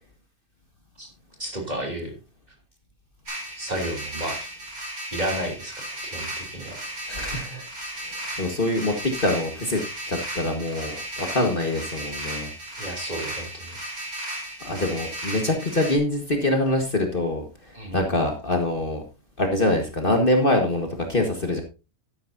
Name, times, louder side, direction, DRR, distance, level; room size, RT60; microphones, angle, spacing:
voice 1, 1.4-2.1 3.6-4.5 5.1-5.7 6.0-6.8 12.8-13.8 17.7-18.1, right 1 dB, 30° right, 2 dB, 3.0 m, -32 dB
sound 1, 3.3-16.0, right 1 dB, 75° right, 5.3 m, -35 dB
voice 2, 7.1-7.6 8.0-9.8 10.1-12.5 14.6-19.0 19.4-21.6, left 1 dB, 40° left, 3 dB, 1.8 m, -25 dB
12.5 x 11.0 x 2.7 m, 0.29 s
omnidirectional pair, 1.5 m